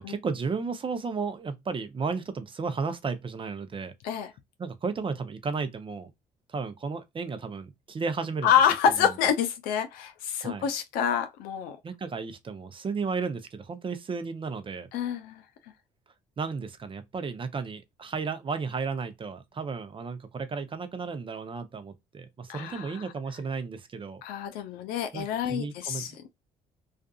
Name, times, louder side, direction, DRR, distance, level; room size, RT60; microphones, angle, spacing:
voice 1, 0.0-3.9 4.6-6.1 6.5-8.5 9.0-9.1 10.4-10.6 11.8-14.9 16.4-24.2 25.1-26.3, right 5 dB, 35° right, 0.7 m, -33 dB
voice 2, 8.4-11.8 14.9-15.4 22.5-23.1 24.2-26.3, left 8 dB, 80° left, 0.4 m, -27 dB
2.5 x 2.4 x 2.3 m
supercardioid pair, 70°, 15 cm